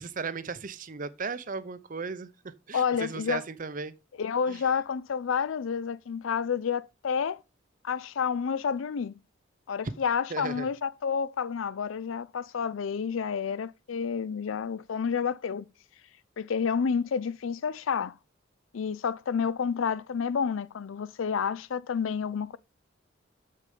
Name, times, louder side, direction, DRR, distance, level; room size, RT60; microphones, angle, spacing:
voice 1, 0.0-3.9 4.5-4.6 10.3-10.7, right 4 dB, 45° right, 0.7 m, -36 dB
voice 2, 2.7-3.4 4.2-7.4 7.8-9.1 9.7-15.7 16.4-18.1 18.7-22.6, left 6 dB, 80° left, 0.4 m, -29 dB
6.7 x 6.6 x 5.0 m
head